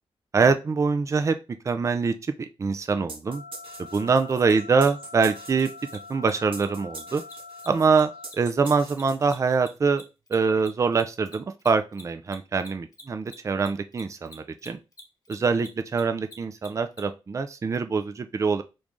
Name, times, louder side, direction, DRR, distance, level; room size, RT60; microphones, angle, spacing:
voice 1, 0.3-1.4 1.6-3.4 3.8-5.7 6.1-7.2 7.7-10.0 10.3-14.8 15.3-18.6, right 4 dB, 30° right, 8 dB, 0.4 m, -24 dB
sound 1, 3.1-9.8, right 3 dB, 60° right, 0.9 m, -44 dB
sound 2, 3.3-8.3, left 4 dB, 75° left, 0.7 m, -44 dB
Mechanisms, 4.4-4.5 4.8-4.9 5.2-5.3 5.5-5.6 5.9-6.0 6.2-6.3 6.6-6.7 7.0-9.7 9.9-17.0, left 2 dB, 35° left, 0.9 m, -46 dB
3.1 x 2.6 x 3.5 m, 0.28 s
wide cardioid pair, 105°, 10 cm